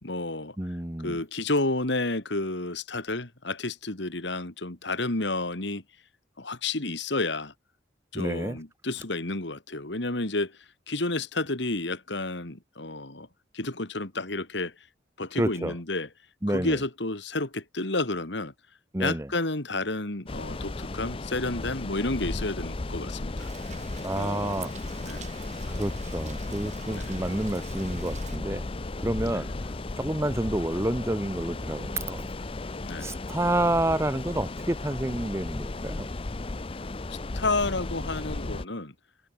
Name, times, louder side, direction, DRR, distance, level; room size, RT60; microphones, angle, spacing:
voice 1, 0.0-0.6 1.0-5.8 6.4-7.5 8.1-10.6 10.9-13.3 13.5-14.7 15.2-16.1 16.5-18.5 19.0-23.5 24.1-24.7 25.0-25.3 26.9-27.2 29.2-29.4 32.8-33.1 37.3-38.9, left 2 dB, 70° left, 2.6 m, -31 dB
voice 2, 0.6-1.2 8.1-8.6 15.4-15.7 16.4-16.8 18.9-19.3 24.0-25.1 25.7-28.7 29.0-29.5 30.0-32.3 33.0-36.1, right 1 dB, 15° right, 0.8 m, -29 dB
sound 1, 20.3-38.7, left 2 dB, 30° left, 0.6 m, -35 dB
Rain, 23.4-28.4, right 6 dB, 40° right, 6.2 m, -48 dB
head